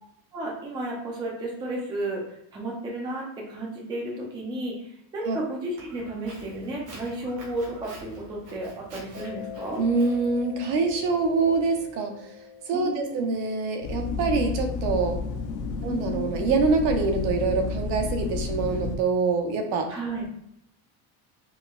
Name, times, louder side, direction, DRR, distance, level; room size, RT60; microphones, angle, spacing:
voice 1, 0.3-9.8 12.7-13.2 15.8-16.3 19.9-20.3, right 1 dB, 10° right, -2 dB, 0.3 m, -33 dB
Walk footsteps, 5.8-11.9, right 1 dB, 85° right, 1.4 m, -47 dB
Mallet percussion, 9.1-15.5, left 8 dB, 35° right, 0.8 m, -45 dB
voice 2, 9.8-12.3 12.7-15.2 15.8-19.9, right 4 dB, 65° right, 4 dB, 0.7 m, -25 dB
sound 1, 13.8-19.0, left 4 dB, 80° left, 0.6 m, -31 dB
4.5 x 2.1 x 2.2 m, 0.77 s
cardioid pair, 145°, 46 cm